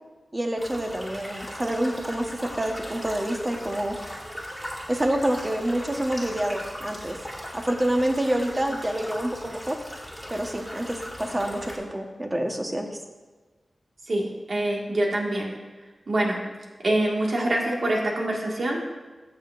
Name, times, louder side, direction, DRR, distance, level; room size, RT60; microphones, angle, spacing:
voice 1, 0.3-4.0 4.9-7.2 7.5-9.8 10.3-13.0, right 1 dB, 25° right, 3 dB, 1.3 m, -27 dB
sound 1, 0.6-11.8, equal, ahead, 2.6 m, -38 dB
voice 2, 14.1-15.6 16.1-16.4 16.8-18.8, right 1 dB, 65° right, -2 dB, 2.0 m, -25 dB
14.0 x 6.8 x 2.6 m, 1.3 s
cardioid pair, 55°, 0 cm